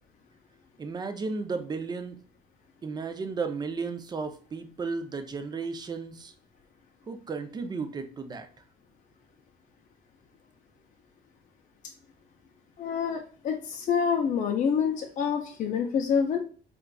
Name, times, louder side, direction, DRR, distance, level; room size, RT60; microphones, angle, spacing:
voice 1, 0.8-2.2 2.8-6.3 7.1-8.5, right 4 dB, 25° right, 8 dB, 0.5 m, -34 dB
voice 2, 12.8-16.4, left 7 dB, 50° left, 2 dB, 0.5 m, -27 dB
4.4 x 2.5 x 2.3 m, 0.41 s
cardioid pair, 110°, 17 cm